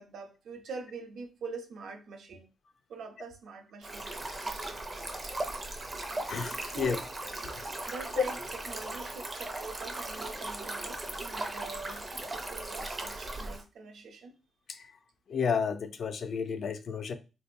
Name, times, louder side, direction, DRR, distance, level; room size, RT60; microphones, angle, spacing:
voice 1, 0.0-2.5 2.9-4.7 6.6-7.0 7.9-14.3, right 4 dB, 70° right, 0.6 m, -44 dB
Stream, 3.8-13.6, right 2 dB, 20° right, 0.4 m, -38 dB
voice 2, 6.3-7.0 8.2-8.3 14.7-14.9 15.3-17.2, left 6 dB, 50° left, 0.3 m, -31 dB
3.7 x 2.6 x 2.5 m
wide cardioid pair, 165°, 0 cm